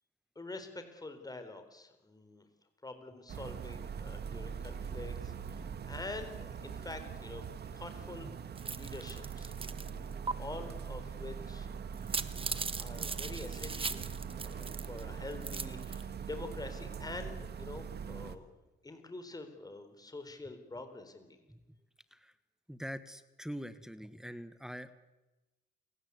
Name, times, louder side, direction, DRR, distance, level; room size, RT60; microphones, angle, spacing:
voice 1, 0.4-2.5 2.8-7.5 7.7-8.3 8.6-9.5 9.8-11.7 12.0-18.5 18.8-21.4, left 2 dB, 20° left, 8 dB, 4.2 m, -46 dB
sound 1, 3.3-18.4, right 7 dB, 55° right, 2.0 m, -42 dB
sound 2, 8.6-9.9 10.3-10.4 11.9-15.0 15.3-16.0, right 4 dB, 25° right, 1.4 m, -39 dB
voice 2, 22.7-24.9, equal, 5° right, 11 dB, 1.6 m, -44 dB
29.5 x 17.5 x 8.3 m, 1.1 s
cardioid pair, 90°, 20 cm